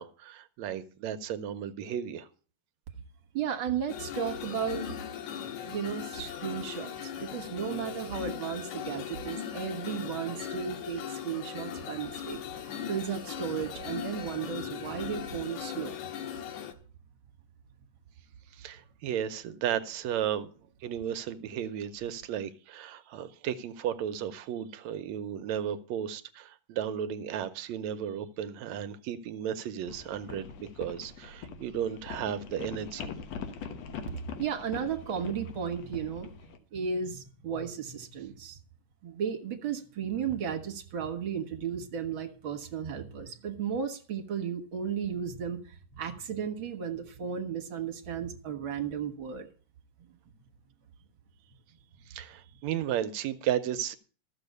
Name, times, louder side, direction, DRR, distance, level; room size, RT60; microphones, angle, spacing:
voice 1, 0.0-2.3 18.5-20.5 20.8-33.1 52.1-54.0, right 9 dB, 80° right, 10 dB, 2.0 m, -34 dB
voice 2, 3.3-4.8 5.6-16.0 34.4-36.3 36.7-38.6 39.0-49.5, right 7 dB, 50° right, 6 dB, 2.0 m, -34 dB
sound 1, 3.9-16.7, left 9 dB, 90° left, 2.6 m, -39 dB
sound 2, 29.9-36.6, left 6 dB, 65° left, 2.3 m, -42 dB
14.0 x 7.0 x 6.7 m, 0.39 s
omnidirectional pair, 3.3 m